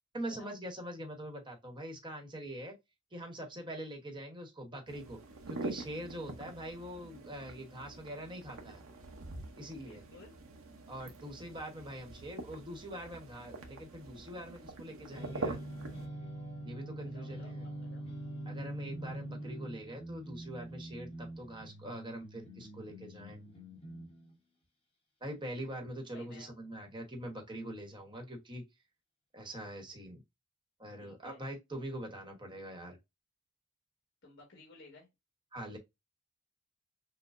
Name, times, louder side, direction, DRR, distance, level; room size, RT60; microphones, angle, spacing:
voice 1, 0.1-2.7 3.1-5.2 5.5-8.8 9.6-10.2 10.9-15.6 16.6-17.6 18.5-23.4 25.2-28.6 29.3-30.2 30.8-33.0 35.5-35.8, right 1 dB, 20° right, 1.1 m, -43 dB
sound 1, 4.9-16.1, right 2 dB, 80° right, 0.9 m, -45 dB
voice 2, 9.8-10.3 17.1-18.0 26.1-26.5 31.0-31.4 34.2-35.1, left 3 dB, 55° left, 1.5 m, -56 dB
sound 2, 15.0-24.3, right 1 dB, 25° left, 1.3 m, -44 dB
6.3 x 2.1 x 2.5 m
head